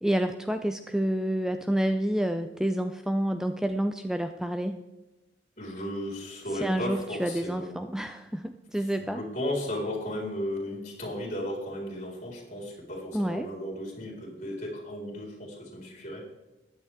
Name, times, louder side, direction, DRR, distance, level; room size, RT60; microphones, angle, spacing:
voice 1, 0.0-4.8 6.6-9.2 13.1-13.5, right 1 dB, 5° right, 7 dB, 0.4 m, -29 dB
voice 2, 5.6-7.8 8.8-16.2, left 1 dB, 40° left, -2 dB, 4.2 m, -35 dB
15.0 x 10.5 x 3.6 m, 1.1 s
head